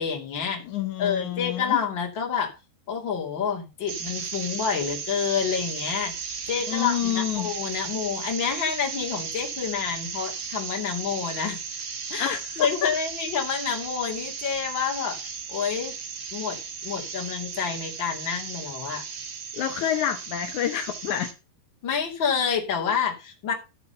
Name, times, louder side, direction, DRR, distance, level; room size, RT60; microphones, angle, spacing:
voice 1, 0.0-0.6 1.0-2.5 2.9-6.1 6.5-11.6 12.1-15.9 16.3-19.0 21.8-23.5, left 7 dB, 35° left, 2.6 m, -28 dB
voice 2, 0.6-1.8 6.7-7.5 12.2-12.9 19.5-21.3, left 10 dB, 80° left, 1.7 m, -28 dB
sound 1, 3.9-21.3, right 6 dB, 80° right, 1.1 m, -35 dB
12.5 x 6.8 x 5.6 m
omnidirectional pair, 5.0 m